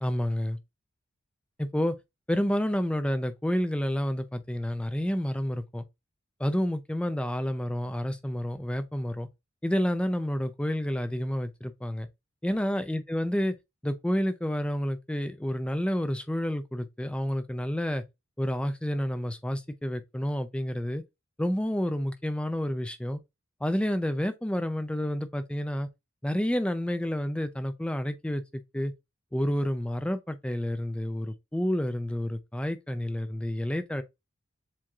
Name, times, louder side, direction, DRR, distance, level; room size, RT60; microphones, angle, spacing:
voice 1, 0.0-0.6 1.6-1.9 2.3-5.8 6.4-9.3 9.6-12.1 12.4-13.5 13.8-18.0 18.4-21.0 21.4-23.2 23.6-25.9 26.2-28.9 29.3-34.0, equal, 5° left, 0.4 m, -29 dB
7.4 x 2.7 x 2.4 m
head